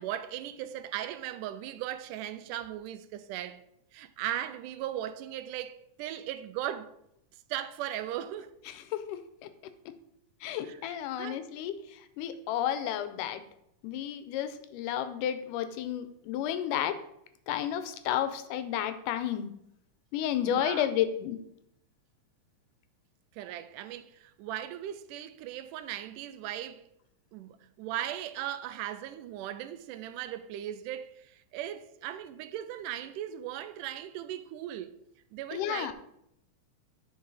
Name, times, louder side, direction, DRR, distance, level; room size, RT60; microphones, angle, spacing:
voice 1, 0.0-3.6 3.9-6.9 7.5-8.6 10.6-11.5 20.5-20.9 23.3-26.9 27.3-34.9 35.3-35.9, right 12 dB, 90° right, 2.1 m, -38 dB
voice 2, 8.7-9.2 10.4-11.8 12.2-13.4 13.8-17.0 17.5-19.5 20.1-21.4 35.5-35.9, left 10 dB, 85° left, 2.2 m, -31 dB
9.4 x 4.6 x 4.7 m
omnidirectional pair, 3.6 m